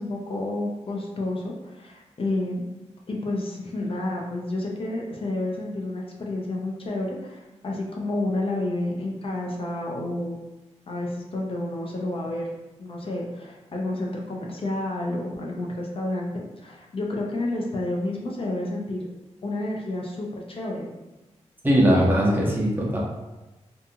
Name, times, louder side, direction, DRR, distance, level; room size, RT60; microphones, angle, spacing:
voice 1, 0.0-2.8 3.1-10.4 10.9-12.5 12.8-19.0 19.4-20.9, left 2 dB, 50° left, -1 dB, 0.5 m, -30 dB
voice 2, 21.6-23.0, equal, 15° right, -4 dB, 0.7 m, -20 dB
2.5 x 2.4 x 2.7 m, 1.1 s
cardioid pair, 80°, 12 cm